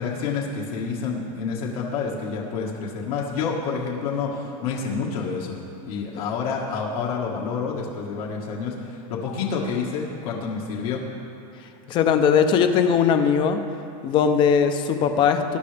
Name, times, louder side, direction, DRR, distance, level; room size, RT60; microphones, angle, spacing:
voice 1, 0.0-5.6 5.8-11.0, left 5 dB, 70° left, -3 dB, 1.7 m, -28 dB
voice 2, 11.9-13.6 14.0-15.6, left 7 dB, 25° left, 8 dB, 0.6 m, -19 dB
20.5 x 10.5 x 3.4 m, 2.6 s
supercardioid pair, 175°, 19 cm